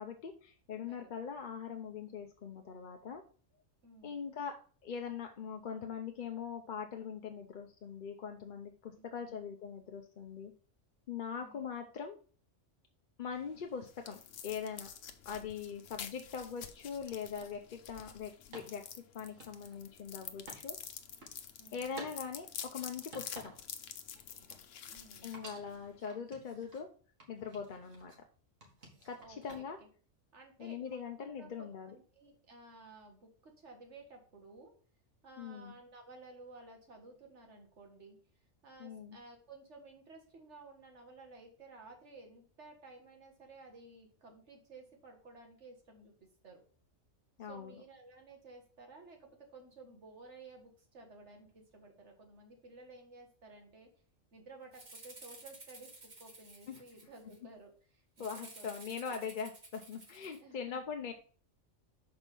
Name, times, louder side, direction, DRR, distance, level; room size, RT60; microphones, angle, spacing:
voice 1, 0.0-3.2 4.0-4.6 4.8-10.5 11.1-12.2 13.2-14.9 15.2-18.8 19.1-20.8 21.7-23.5 25.2-26.9 27.3-28.1 29.0-29.8 30.6-31.9 35.4-35.7 38.8-39.2 47.4-47.7 56.7-56.8 58.2-61.1, left 6 dB, 50° left, 4 dB, 0.7 m, -42 dB
voice 2, 3.8-4.2 9.0-9.4 11.4-11.6 21.6-21.9 24.9-25.4 29.2-29.4 29.8-29.9 30.3-34.7 35.2-38.2 38.6-46.1 46.4-46.6 47.4-53.9 54.3-55.9 56.2-58.8 60.4-60.8, right 3 dB, 65° right, 2 dB, 1.9 m, -55 dB
sound 1, 13.3-26.0, left 8 dB, 85° left, 1.1 m, -48 dB
sound 2, 17.4-17.6 18.5-20.7 21.0-21.4 21.9-22.2 22.6-23.8 24.2-25.1 25.3-26.9 27.2-28.3 28.6-29.9, right 2 dB, 85° right, 2.2 m, -53 dB
Rattle (instrument), 54.7-57.4 58.2-60.4, right 2 dB, 40° right, 1.5 m, -53 dB
6.4 x 4.4 x 5.2 m, 0.42 s
omnidirectional pair, 1.3 m